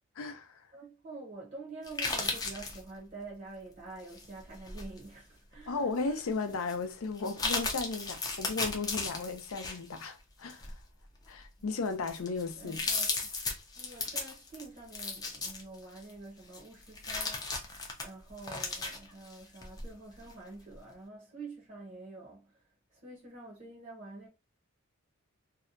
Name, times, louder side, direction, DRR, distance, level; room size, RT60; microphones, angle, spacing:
voice 1, 0.2-0.6 5.7-10.7 11.3-12.8, left 4 dB, 75° left, 0.5 m, -35 dB
voice 2, 0.7-6.2 11.6-11.8 12.6-13.2 13.7-17.6 18.0-22.6 22.9-24.3, right 3 dB, 35° right, 0.7 m, -47 dB
sound 1, 1.8-2.8 4.1-5.0 5.5-5.6 6.6-6.7 7.2-10.1 10.5-10.7 11.4-11.5 11.9-16.1 16.5-19.8 20.2-20.3, left 3 dB, 20° left, 0.4 m, -35 dB
2.7 x 2.2 x 2.4 m
head